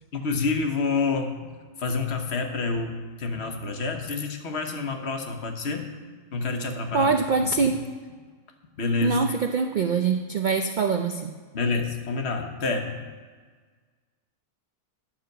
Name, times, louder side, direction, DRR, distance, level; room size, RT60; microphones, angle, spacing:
voice 1, 0.1-1.5 1.8-5.9 6.3-7.1 7.4-7.7 8.8-9.2 11.5-13.0, left 4 dB, 50° left, 4 dB, 1.2 m, -28 dB
voice 2, 6.9-7.9 9.0-11.3, right 5 dB, 85° right, 6 dB, 0.4 m, -24 dB
10.5 x 5.7 x 6.5 m, 1.5 s
omnidirectional pair, 1.5 m